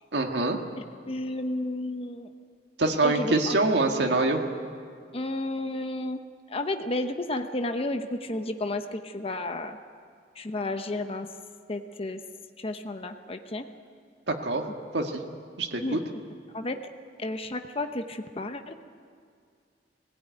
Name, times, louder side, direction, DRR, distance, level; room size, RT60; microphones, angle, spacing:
voice 1, 0.1-0.6 2.8-4.4 14.3-14.6 14.9-15.2 15.6-16.0, right 2 dB, 75° right, 2 dB, 1.8 m, -25 dB
voice 2, 1.1-2.3 3.0-3.6 5.1-6.2 6.5-9.8 10.4-11.3 11.7-12.2 12.6-13.7 15.8-16.0 16.5-16.8 17.2-18.7, left 2 dB, 35° left, 7 dB, 0.9 m, -32 dB
20.0 x 16.0 x 9.3 m, 2.2 s
head